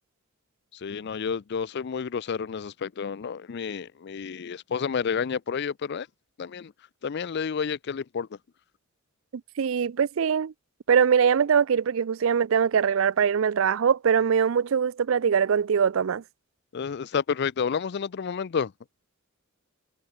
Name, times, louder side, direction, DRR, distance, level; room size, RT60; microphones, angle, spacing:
voice 1, 0.8-6.1 6.4-6.7 7.0-8.3 16.7-18.7, left 6 dB, 55° left, 0.4 m, -30 dB
voice 2, 9.6-10.5 10.9-16.2, right 7 dB, 70° right, 0.4 m, -22 dB
head